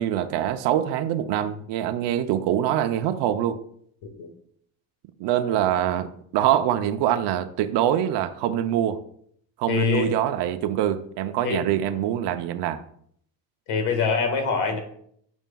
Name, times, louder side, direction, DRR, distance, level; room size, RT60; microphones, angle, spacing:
voice 1, 0.0-3.6 5.2-6.1 6.3-9.0 9.6-12.8, right 11 dB, 75° right, 0.7 m, -24 dB
voice 2, 9.7-10.1 11.4-11.6 13.7-14.8, left 5 dB, 80° left, 1.7 m, -24 dB
9.0 x 6.2 x 2.3 m
cardioid pair, 125°, 42 cm